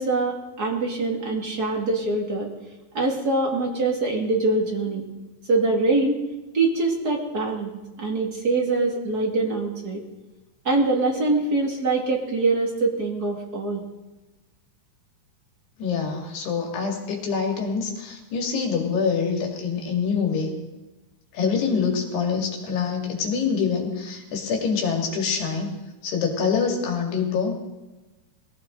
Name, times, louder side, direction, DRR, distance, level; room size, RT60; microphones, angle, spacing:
voice 1, 0.0-2.5 2.9-5.0 5.5-6.2 6.5-10.0 10.6-13.8, right 3 dB, 30° right, -1 dB, 2.2 m, -24 dB
voice 2, 15.8-20.6 21.3-25.7 26.0-27.8, left 5 dB, 85° left, 1 dB, 4.5 m, -25 dB
21.5 x 16.5 x 3.9 m, 1.1 s
omnidirectional pair, 4.6 m